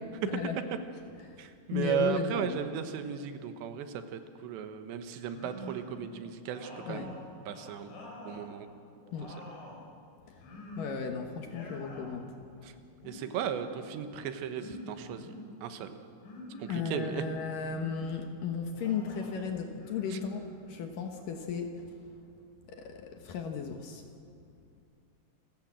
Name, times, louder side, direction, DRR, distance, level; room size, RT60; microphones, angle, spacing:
voice 1, 0.2-0.6 1.3-2.6 6.9-7.1 9.1-9.3 10.3-10.5 10.8-12.4 16.7-21.9 22.7-24.1, left 6 dB, 65° left, 5 dB, 2.3 m, -35 dB
voice 2, 1.4-7.1 7.5-8.0 8.3-8.7 12.6-12.7 13.0-15.3 15.6-16.0 16.6-17.2 20.1-20.2, right 8 dB, 75° right, 9 dB, 3.3 m, -35 dB
sound 1, 5.2-6.0 6.5-8.5 8.9-9.8 10.4-11.1 11.4-12.1 12.9-13.7 14.6-15.5 16.2-16.9 17.6-18.2 18.7-19.3 19.7-20.8, left 1 dB, 85° left, 6.4 m, -46 dB
28.0 x 15.0 x 7.5 m, 2.4 s
omnidirectional pair, 5.2 m